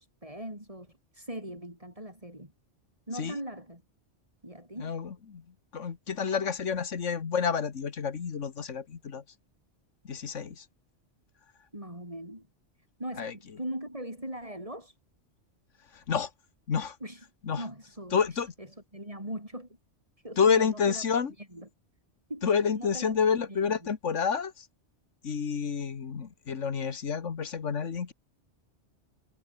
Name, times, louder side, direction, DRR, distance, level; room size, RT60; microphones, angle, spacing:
voice 1, 0.0-2.5 3.1-3.8 4.4-5.0 11.7-12.5 13.0-15.0 17.0-17.2 17.6-19.7 20.2-21.0 21.4-21.7 22.3-22.5 22.8-23.1 23.5-23.8, right 1 dB, 30° right, 8.2 m, -40 dB
voice 2, 4.8-5.4 5.7-9.2 10.0-10.7 13.2-13.3 15.9-16.3 16.7-17.0 17.4-17.7 18.1-18.5 20.4-21.3 22.4-24.7 25.2-28.1, left 6 dB, 85° left, 1.8 m, -29 dB
omnidirectional pair, 1.2 m